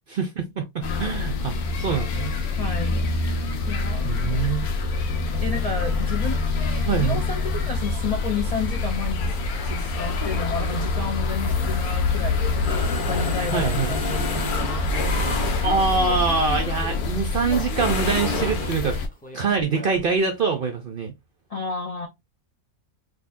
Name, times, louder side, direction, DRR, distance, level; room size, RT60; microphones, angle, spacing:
voice 1, 0.1-2.4 4.0-4.7 6.9-7.2 13.5-13.9 15.6-19.0 19.3-21.1, right 4 dB, 60° right, 0.5 m, -24 dB
sound 1, 0.8-19.1, left 3 dB, 90° left, 1.3 m, -26 dB
voice 2, 2.5-4.7 5.4-9.4 9.6-14.5 21.5-22.1, left 5 dB, 65° left, 0.3 m, -32 dB
sound 2, 11.3-16.1 17.6-18.8, left 3 dB, 45° left, 0.8 m, -31 dB
Human voice, 13.1-17.0 17.5-20.2, equal, 10° left, 0.6 m, -42 dB
3.8 x 2.7 x 2.5 m
omnidirectional pair, 1.5 m